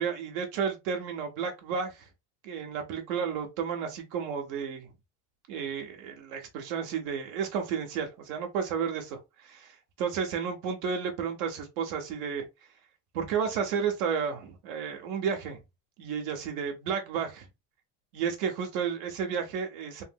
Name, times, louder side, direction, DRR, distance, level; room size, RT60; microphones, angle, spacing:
voice 1, 0.0-2.1 2.4-4.9 5.5-12.5 13.1-15.6 16.0-17.5 18.1-20.0, right 6 dB, 65° right, 0.8 m, -32 dB
3.1 x 2.8 x 2.2 m
cardioid pair, 165°, 33 cm